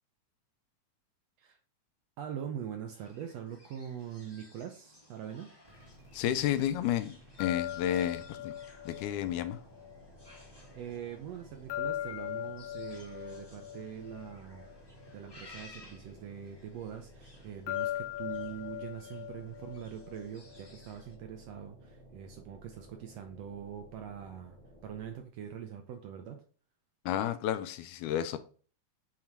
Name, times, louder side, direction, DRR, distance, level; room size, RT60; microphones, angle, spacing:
voice 1, 2.2-5.5 10.5-14.7 15.1-24.6 24.8-26.4, right 9 dB, 75° right, 5 dB, 1.5 m, -43 dB
sound 1, 2.9-21.1, left 2 dB, 30° left, 0.4 m, -59 dB
sound 2, 5.6-25.3, equal, 60° right, 0.5 m, -56 dB
voice 2, 6.1-8.5 8.9-9.6 27.1-28.4, left 11 dB, 90° left, 11 dB, 2.1 m, -31 dB
sound 3, 7.4-10.5 11.7-15.2 17.7-20.8, left 13 dB, 65° left, 1.7 m, -40 dB
7.1 x 2.9 x 4.5 m, 0.41 s
omnidirectional pair, 3.4 m